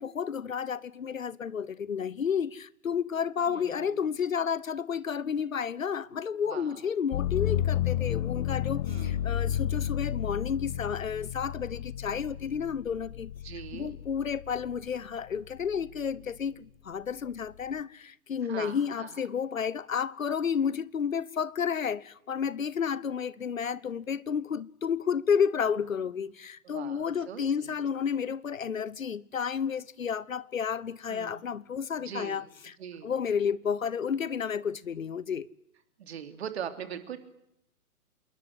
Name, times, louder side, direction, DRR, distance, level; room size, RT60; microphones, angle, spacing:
voice 1, 0.0-13.3 13.7-32.8 33.0-35.5, left 7 dB, 60° left, 1.0 m, -31 dB
voice 2, 3.5-4.1 6.5-6.8 8.9-9.3 13.4-13.9 18.4-19.2 26.6-27.7 31.1-31.4 32.0-32.4 32.8-33.1 36.0-37.2, right 8 dB, 45° right, 3.3 m, -41 dB
sound 1, 7.1-14.9 15.4-16.2, left 11 dB, 30° left, 1.4 m, -32 dB
27.5 x 22.5 x 9.7 m
figure-of-eight pair, 125°, 44 cm